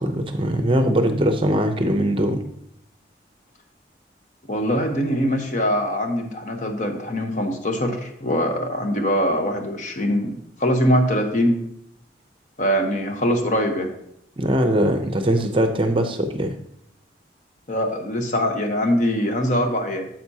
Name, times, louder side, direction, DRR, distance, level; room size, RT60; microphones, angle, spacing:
voice 1, 0.0-2.4 14.4-16.5, right 1 dB, 30° right, 7 dB, 0.6 m, -21 dB
voice 2, 4.5-11.6 12.6-13.9 17.7-20.1, equal, 40° left, 4 dB, 1.0 m, -22 dB
9.3 x 7.6 x 2.8 m, 0.73 s
head